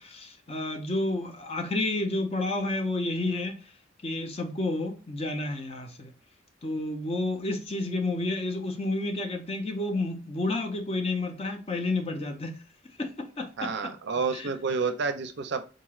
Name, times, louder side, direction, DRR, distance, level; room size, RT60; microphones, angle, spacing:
voice 1, 0.0-3.7 4.0-6.1 6.6-12.6 13.0-13.7 14.3-14.5, left 2 dB, 30° left, 0.6 m, -30 dB
voice 2, 13.6-15.6, right 5 dB, 60° right, 0.4 m, -29 dB
3.8 x 3.1 x 2.3 m
head